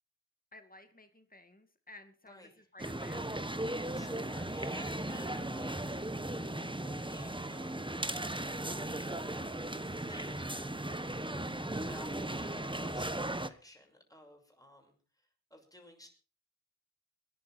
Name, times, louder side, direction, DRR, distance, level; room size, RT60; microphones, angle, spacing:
voice 1, 0.5-3.5, left 2 dB, 25° left, 7 dB, 2.2 m, -55 dB
sound 1, 2.8-13.5, right 1 dB, 15° right, 1.3 m, -37 dB
voice 2, 3.7-6.2 6.7-7.8 8.5-9.2 9.8-10.5 11.7-16.1, left 1 dB, 10° left, 2 dB, 6.5 m, -55 dB
22.5 x 11.0 x 4.5 m, 0.37 s
wide cardioid pair, 45°, 33 cm